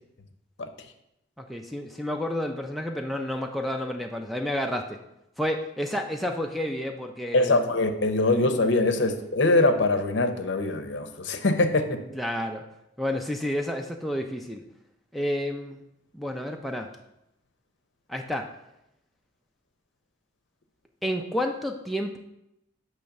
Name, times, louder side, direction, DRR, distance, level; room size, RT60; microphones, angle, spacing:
voice 1, 1.4-5.0 5.4-7.6 8.3-8.4 12.1-12.6 13.0-14.6 15.1-15.8 16.1-16.9 18.1-18.5 21.0-22.2, left 1 dB, ahead, 2 dB, 0.3 m, -30 dB
voice 2, 7.3-12.0, left 2 dB, 60° left, 7 dB, 0.7 m, -23 dB
6.5 x 3.1 x 5.7 m, 0.85 s
head